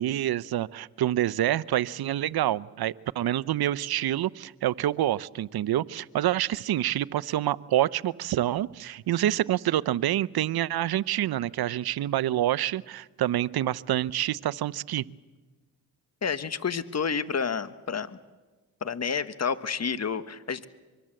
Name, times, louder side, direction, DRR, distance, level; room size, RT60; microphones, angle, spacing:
voice 1, 0.0-15.0, right 13 dB, 70° right, 17 dB, 0.8 m, -27 dB
voice 2, 16.2-18.2 18.8-20.7, left 6 dB, 40° left, 13 dB, 1.5 m, -30 dB
24.5 x 23.0 x 7.8 m, 1.3 s
supercardioid pair, 45°, 39 cm